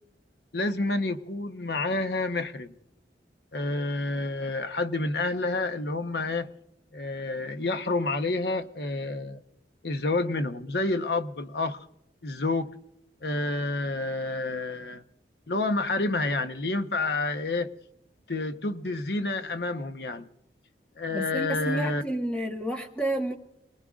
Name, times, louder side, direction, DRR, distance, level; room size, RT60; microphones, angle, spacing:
voice 1, 0.5-2.7 3.5-6.5 6.9-9.4 9.8-11.8 12.2-12.7 13.2-15.0 15.5-17.7 18.3-20.3 21.0-22.0, left 2 dB, 70° left, 8 dB, 0.9 m, -29 dB
voice 2, 21.1-23.4, right 1 dB, 5° left, 2 dB, 1.4 m, -30 dB
28.0 x 19.5 x 2.4 m, 0.84 s
head